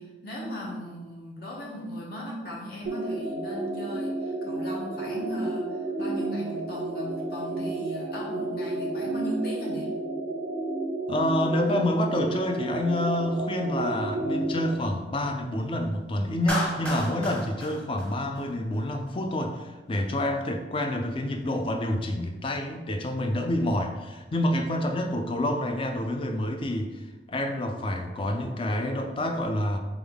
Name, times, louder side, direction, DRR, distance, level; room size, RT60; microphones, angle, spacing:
voice 1, 0.0-9.9, equal, 55° left, -3 dB, 0.9 m, -37 dB
sound 1, 2.8-14.7, right 2 dB, 60° right, 0.5 m, -31 dB
voice 2, 11.1-29.8, left 1 dB, 30° left, 5 dB, 0.4 m, -28 dB
Clapping, 16.5-18.8, left 1 dB, 5° left, 0.8 m, -32 dB
3.9 x 3.5 x 3.5 m, 1.2 s
head